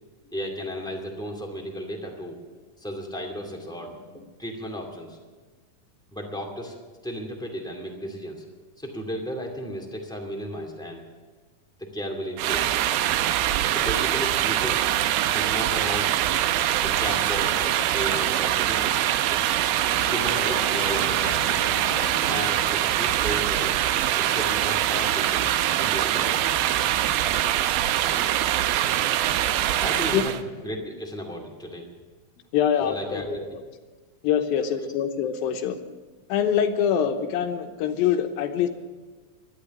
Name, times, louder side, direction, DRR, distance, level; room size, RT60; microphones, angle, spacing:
voice 1, 0.3-2.4 2.8-5.2 6.1-8.4 8.8-11.0 11.8-12.7 13.7-14.8 15.3-16.2 16.8-19.5 20.0-21.6 22.3-23.7 24.1-25.5 25.8-26.6 29.8-31.9 32.8-33.5 34.5-35.1, equal, ahead, 0 dB, 1.2 m, -34 dB
sound 1, 12.4-30.4, right 12 dB, 85° right, 2.5 m, -23 dB
sound 2, 19.9-24.3, left 5 dB, 65° left, 3.0 m, -39 dB
voice 2, 32.5-33.2 33.5-33.6 34.2-35.8 36.3-38.7, left 9 dB, 85° left, 7 dB, 2.8 m, -24 dB
12.0 x 11.5 x 9.9 m, 1.3 s
omnidirectional pair, 4.2 m